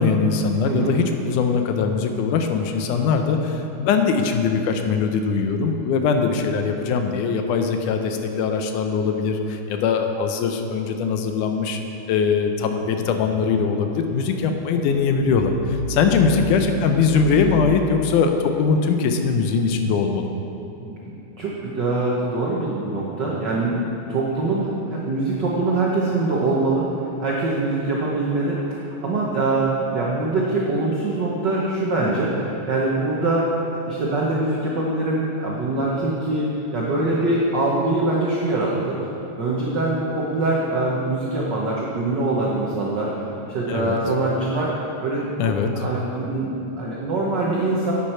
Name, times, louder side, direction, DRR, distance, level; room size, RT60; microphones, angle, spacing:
voice 1, 0.0-11.8 12.1-15.5 15.9-20.3 43.7-44.0 45.4-45.7, left 5 dB, 80° left, 5 dB, 2.2 m, -21 dB
sound 1, 12.6-18.1, equal, 25° left, 2.3 m, -35 dB
voice 2, 20.8-26.8 27.2-33.5 33.9-39.0 39.4-47.9, right 2 dB, 90° right, -4 dB, 0.9 m, -23 dB
11.0 x 8.2 x 4.4 m, 3.0 s
omnidirectional pair, 3.6 m